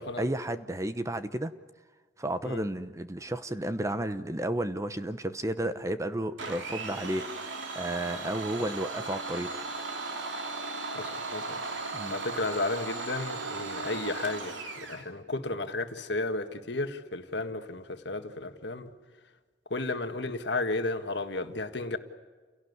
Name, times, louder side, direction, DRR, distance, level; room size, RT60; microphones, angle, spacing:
voice 1, 0.0-1.5 2.2-9.5 11.9-12.2, right 1 dB, 15° right, 0.9 m, -32 dB
Domestic sounds home sounds, 6.4-15.0, right 3 dB, 85° right, 3.0 m, -37 dB
voice 2, 10.9-11.6 12.1-14.6 14.9-18.9 19.7-22.0, left 2 dB, 65° left, 1.8 m, -33 dB
29.5 x 17.5 x 9.6 m
head